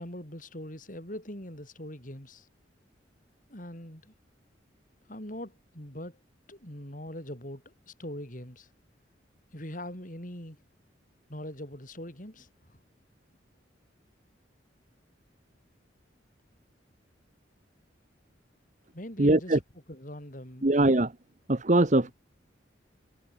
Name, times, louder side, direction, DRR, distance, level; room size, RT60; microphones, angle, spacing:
voice 1, 0.0-2.5 3.5-4.1 5.1-6.2 6.5-8.7 9.5-10.6 11.3-12.8 18.9-19.6 19.9-20.7 22.0-22.1, left 1 dB, 45° left, 6.4 m, -42 dB
voice 2, 19.2-19.6 20.6-21.1 21.5-22.1, right 2 dB, 40° right, 1.1 m, -22 dB
head